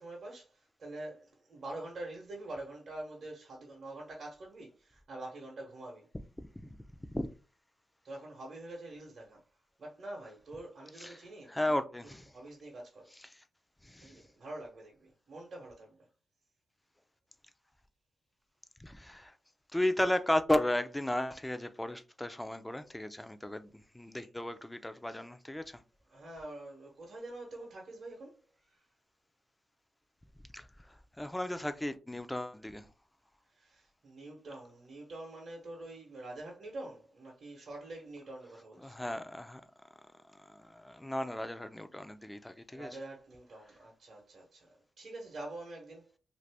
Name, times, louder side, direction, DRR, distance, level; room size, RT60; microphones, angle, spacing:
voice 1, 0.0-6.1 8.0-9.4 9.8-11.8 12.0-13.1 14.0-16.1 26.1-28.8 33.5-39.1 42.7-46.1, right 2 dB, 60° right, 0.9 m, -46 dB
voice 2, 11.5-12.3 13.3-13.4 13.8-14.2 18.8-19.3 19.7-23.7 23.9-25.8 30.5-32.9 38.8-39.6 40.4-42.9, left 1 dB, 15° left, 0.5 m, -34 dB
2.6 x 2.5 x 3.4 m
supercardioid pair, 45°, 0 cm